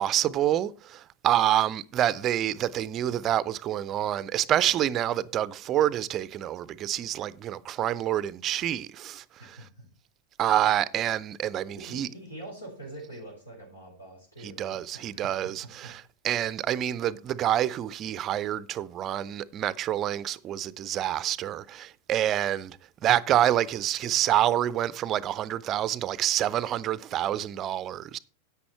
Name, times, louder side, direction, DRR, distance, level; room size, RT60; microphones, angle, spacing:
voice 1, 0.0-9.2 10.4-12.1 14.4-22.8 23.0-28.2, right 12 dB, 30° right, 0.5 m, -27 dB
voice 2, 9.4-9.9 11.8-15.3 15.6-15.9, right 1 dB, 80° left, 4.1 m, -45 dB
10.5 x 8.4 x 4.4 m
figure-of-eight pair, 90°, 0 cm